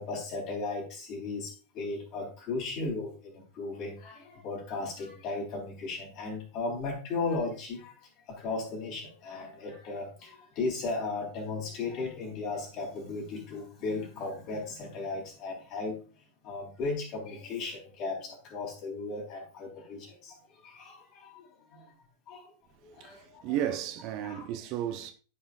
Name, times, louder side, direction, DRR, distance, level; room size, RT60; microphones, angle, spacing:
voice 1, 0.0-8.0 8.3-16.0 16.4-21.9 22.3-22.5 22.8-23.6 24.2-24.5, left 3 dB, 40° left, 3.9 m, -36 dB
voice 2, 23.0-25.1, right 11 dB, 40° right, 0.8 m, -33 dB
13.5 x 5.5 x 2.6 m
figure-of-eight pair, 90°, 0 cm